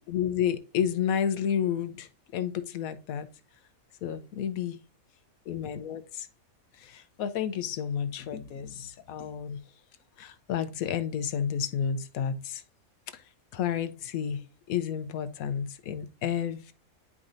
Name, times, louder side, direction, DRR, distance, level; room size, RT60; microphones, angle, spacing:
voice 1, 0.1-3.3 4.0-4.8 5.5-6.3 6.7-9.6 10.2-12.6 13.1-13.2 13.5-16.7, left 8 dB, 80° left, 1.1 m, -31 dB
9.9 x 4.8 x 2.6 m
omnidirectional pair, 1.5 m